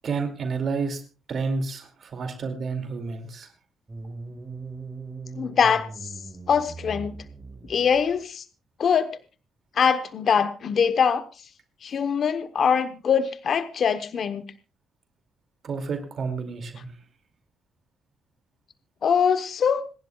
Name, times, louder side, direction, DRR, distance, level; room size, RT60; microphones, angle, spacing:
voice 1, 0.0-1.0 1.3-3.5 15.6-16.9, right 4 dB, 55° right, 6 dB, 2.4 m, -30 dB
sound 1, 3.9-8.2, right 3 dB, 20° right, 4.2 m, -40 dB
voice 2, 5.4-6.1 6.5-7.2 7.6-8.4 8.8-9.1 9.8-11.2 11.8-14.4 19.0-19.8, left 7 dB, 55° left, 11 dB, 0.9 m, -23 dB
26.5 x 11.0 x 2.3 m, 0.33 s
cardioid pair, 90°, 0 cm